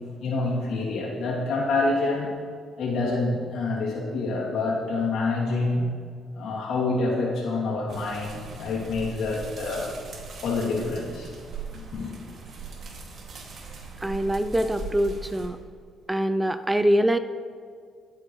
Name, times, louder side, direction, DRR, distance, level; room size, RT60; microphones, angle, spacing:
voice 1, 0.2-2.3 2.8-5.8 6.3-9.9 10.4-11.3 11.7-12.1, left 3 dB, 80° left, -4 dB, 2.9 m, -27 dB
sound 1, 7.9-15.5, right 4 dB, 60° right, 2.4 m, -40 dB
voice 2, 14.0-15.6 16.1-17.2, equal, 10° right, 10 dB, 0.5 m, -24 dB
21.0 x 8.5 x 3.2 m, 2.1 s
cardioid pair, 90°, 0 cm